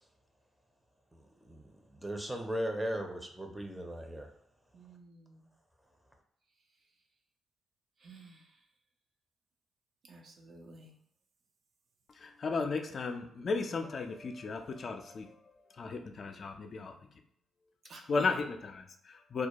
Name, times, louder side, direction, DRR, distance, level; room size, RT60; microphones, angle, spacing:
voice 1, 1.1-4.3, equal, 10° right, 3 dB, 0.5 m, -38 dB
voice 2, 4.7-5.4 8.0-8.5 10.1-10.9 17.8-18.2, right 3 dB, 60° right, 1 dB, 0.4 m, -50 dB
voice 3, 12.1-17.0 17.9-19.5, left 4 dB, 55° left, 5 dB, 0.3 m, -35 dB
2.3 x 2.1 x 2.8 m, 0.71 s
hypercardioid pair, 45°, 0 cm